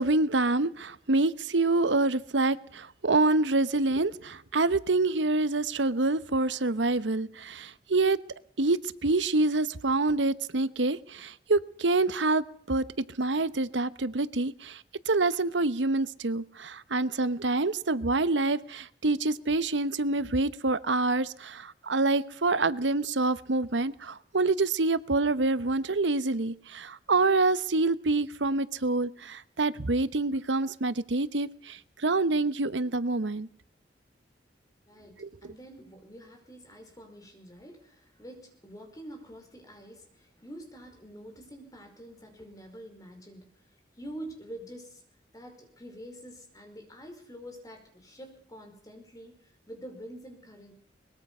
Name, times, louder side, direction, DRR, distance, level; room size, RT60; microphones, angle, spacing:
voice 1, 0.0-8.2 8.6-33.5 35.2-35.3, right 2 dB, 90° right, 15 dB, 1.0 m, -27 dB
voice 2, 34.8-43.6 44.0-45.0 45.3-50.7, right 1 dB, 20° left, 4 dB, 5.0 m, -46 dB
22.5 x 21.0 x 5.6 m, 0.62 s
head